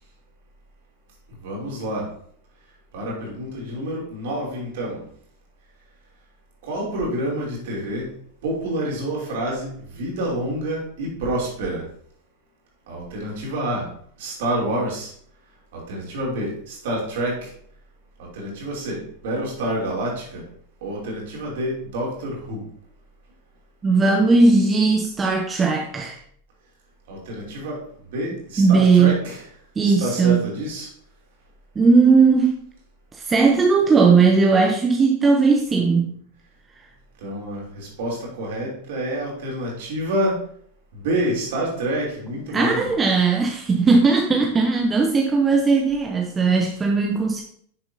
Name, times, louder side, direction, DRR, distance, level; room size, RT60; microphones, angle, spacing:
voice 1, 1.4-2.1 2.9-5.0 6.6-8.1 8.4-11.9 12.9-13.9 14.2-15.1 15.7-17.5 18.2-20.4 20.8-22.6 27.1-27.8 28.1-29.5 29.8-30.9 37.2-40.4 40.9-42.9, right 1 dB, 55° right, -3 dB, 3.1 m, -28 dB
voice 2, 23.8-26.2 28.6-29.2 29.8-30.4 31.8-32.6 33.3-36.2 42.5-47.4, right 4 dB, 15° right, 2 dB, 0.8 m, -17 dB
9.9 x 6.7 x 2.8 m, 0.62 s
figure-of-eight pair, 90°, 0 cm